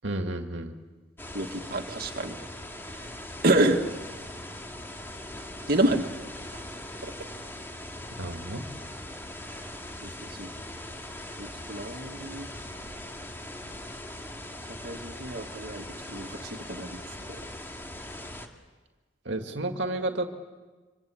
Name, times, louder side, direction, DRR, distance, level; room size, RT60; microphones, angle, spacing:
voice 1, 0.0-0.7 8.1-8.7 19.3-20.3, right 1 dB, 80° right, 5 dB, 2.0 m, -31 dB
sound 1, 1.2-18.5, left 1 dB, 15° left, 2.3 m, -41 dB
voice 2, 1.3-2.4 2.9-3.1 3.4-3.9 5.7-6.1 6.5-6.6 7.0-7.1 10.0-10.5 11.4-12.5 14.8-17.0, right 1 dB, 55° right, 3 dB, 2.1 m, -28 dB
27.0 x 25.5 x 8.6 m, 1.3 s
head